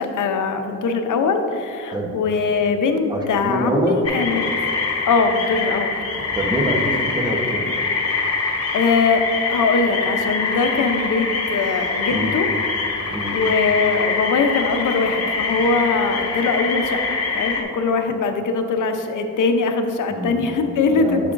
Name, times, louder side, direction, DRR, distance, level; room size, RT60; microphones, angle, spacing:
voice 1, 0.0-4.5 5.1-5.9 8.7-12.5 13.0-17.0 17.3-21.3, left 4 dB, 75° left, 6 dB, 0.7 m, -21 dB
voice 2, 3.1-4.0 6.3-7.7 12.1-12.3 13.1-13.4 20.1-20.5 20.9-21.3, right 1 dB, 15° right, 0 dB, 0.9 m, -25 dB
sound 1, 4.0-17.6, left 4 dB, 50° left, 1.0 m, -24 dB
8.3 x 6.6 x 2.5 m, 2.8 s
wide cardioid pair, 115°, 31 cm